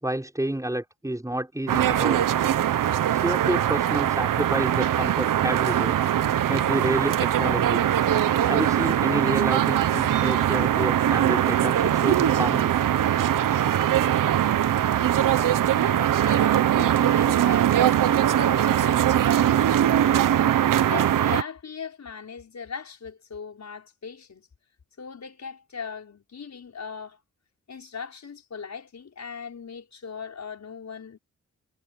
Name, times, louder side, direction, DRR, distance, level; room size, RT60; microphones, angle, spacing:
voice 1, 0.0-2.3 3.1-6.0 6.5-7.8 8.4-12.7, right 1 dB, 10° right, 6.1 m, -29 dB
sound 1, 1.7-21.4, right 11 dB, 85° right, 1.0 m, -21 dB
voice 2, 7.9-8.3 10.1-10.5 15.1-24.5 25.0-27.2 27.7-31.2, left 6 dB, 60° left, 5.9 m, -39 dB
cardioid pair, 65°, 32 cm